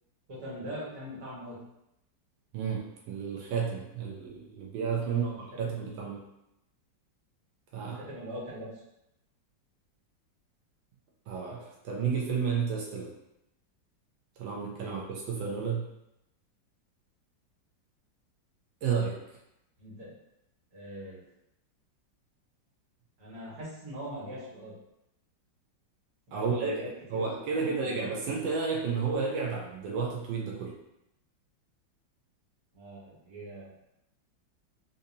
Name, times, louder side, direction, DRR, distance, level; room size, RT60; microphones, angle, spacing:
voice 1, 0.3-1.6 5.0-6.0 7.8-8.7 14.7-15.0 19.8-20.1 20.7-21.2 23.2-24.7 26.3-28.1 32.7-33.7, equal, 55° right, -9 dB, 2.0 m, -42 dB
voice 2, 2.5-6.2 7.7-8.0 11.3-13.1 14.4-15.8 18.8-19.1 26.3-26.7 27.1-30.7, right 5 dB, 85° right, -3 dB, 1.4 m, -31 dB
3.9 x 2.7 x 2.7 m, 0.85 s
omnidirectional pair, 2.0 m